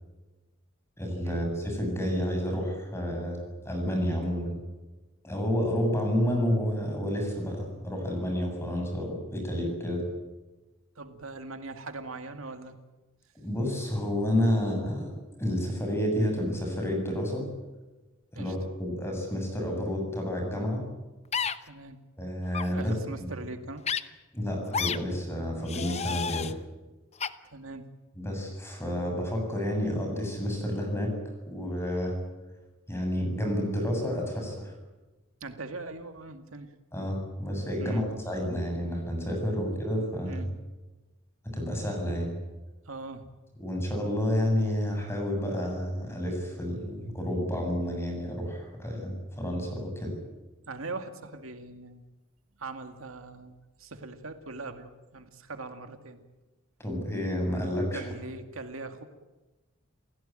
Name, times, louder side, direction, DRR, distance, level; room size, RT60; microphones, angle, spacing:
voice 1, 1.0-4.6 5.2-10.0 13.3-15.1 15.4-17.5 18.3-20.8 22.2-22.9 24.3-26.5 28.2-31.1 31.5-32.2 32.9-34.7 36.9-40.4 41.4-42.3 43.6-50.1 56.8-58.1, equal, 10° left, 2 dB, 7.6 m, -30 dB
voice 2, 11.0-12.8 14.5-14.7 18.4-18.6 21.6-22.0 22.7-23.8 27.4-27.9 35.4-36.7 37.8-38.1 40.2-40.5 42.9-43.3 50.7-52.0 52.6-56.2 57.9-59.0, right 3 dB, 80° right, 7 dB, 2.1 m, -41 dB
sound 1, 21.3-21.6 22.5-22.7 23.8-24.0 24.7-25.0 25.7-26.5 27.2-27.3, left 6 dB, 30° left, 0.9 m, -30 dB
29.5 x 16.5 x 9.0 m, 1.1 s
head